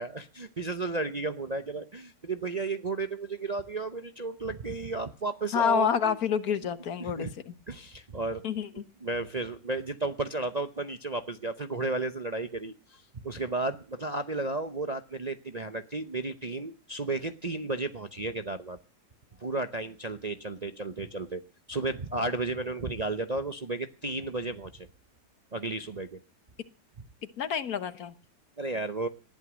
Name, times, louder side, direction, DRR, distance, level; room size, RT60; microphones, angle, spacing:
voice 1, 0.0-6.2 7.0-7.3 7.7-8.4 8.7-18.8 19.4-21.4 21.7-24.9 25.5-26.2 28.6-29.1, right 3 dB, 35° right, 9 dB, 0.7 m, -33 dB
voice 2, 5.5-7.5 8.4-8.7 27.4-28.1, left 7 dB, 65° left, 14 dB, 1.5 m, -28 dB
19.0 x 11.5 x 6.2 m, 0.35 s
omnidirectional pair, 1.8 m